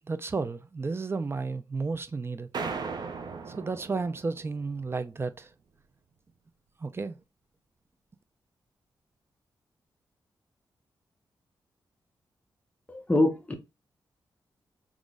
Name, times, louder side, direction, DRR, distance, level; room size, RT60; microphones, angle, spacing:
voice 1, 0.1-2.5 3.6-5.5 6.8-7.2, right 4 dB, 30° right, 0.5 m, -32 dB
sound 1, 2.5-5.0, right 5 dB, 65° right, 0.8 m, -37 dB
voice 2, 12.9-13.5, left 2 dB, 15° left, 1.0 m, -24 dB
3.9 x 3.1 x 3.6 m
cardioid pair, 90°, 8 cm